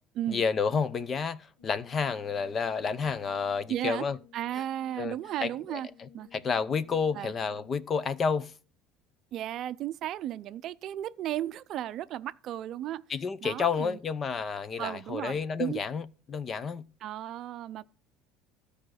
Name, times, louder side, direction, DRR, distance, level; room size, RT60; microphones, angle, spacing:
voice 1, 0.3-4.2 5.0-5.2 5.4-8.5 13.1-16.9, left 5 dB, 30° left, 0.7 m, -30 dB
Brass instrument, 1.6-8.0, left 9 dB, 65° left, 1.4 m, -56 dB
voice 2, 3.7-4.0 4.3-5.9 6.1-6.3 7.1-7.3 9.3-13.0 13.4-14.0 14.8-15.8 17.0-17.8, right 12 dB, 50° right, 0.5 m, -34 dB
13.0 x 4.9 x 6.4 m
supercardioid pair, 120°, 0 cm